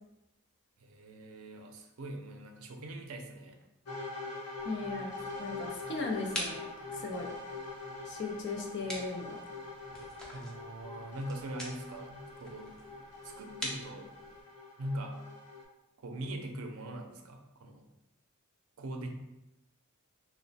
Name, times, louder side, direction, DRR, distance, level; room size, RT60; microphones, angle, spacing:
voice 1, 0.8-3.6 10.3-12.7 13.2-14.1 14.8-15.2 16.0-17.9 18.8-19.1, right 1 dB, 70° right, 4 dB, 0.5 m, -42 dB
sound 1, 3.9-15.6, left 3 dB, 80° left, 0.9 m, -44 dB
sound 2, 4.5-14.4, equal, 5° left, 0.5 m, -46 dB
voice 2, 4.6-5.1 5.4-7.3 8.0-9.4, left 3 dB, 55° left, 1 dB, 0.5 m, -37 dB
2.9 x 2.1 x 4.0 m, 0.92 s
head